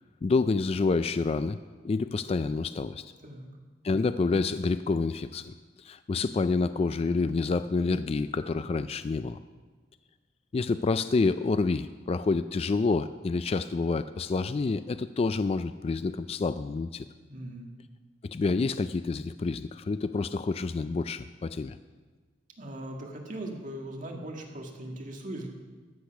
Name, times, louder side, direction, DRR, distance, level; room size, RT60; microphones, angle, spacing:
voice 1, 0.2-1.6 1.8-3.0 3.8-5.5 5.8-9.4 10.5-17.0 18.2-21.8, left 3 dB, 35° left, 12 dB, 0.3 m, -28 dB
voice 2, 17.3-17.7 22.6-25.5, right 1 dB, 45° right, 1 dB, 1.8 m, -39 dB
14.0 x 8.4 x 5.8 m, 1.4 s
head